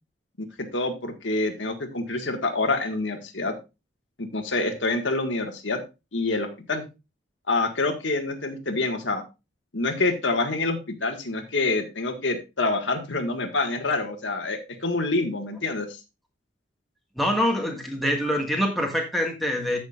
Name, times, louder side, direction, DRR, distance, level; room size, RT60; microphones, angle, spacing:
voice 1, 0.7-3.5 4.2-5.8 6.1-6.8 7.5-9.2 9.7-16.0, left 3 dB, 75° left, 4 dB, 1.8 m, -27 dB
voice 2, 17.2-19.8, equal, ahead, 0 dB, 1.8 m, -25 dB
14.5 x 6.4 x 2.5 m, 0.26 s
head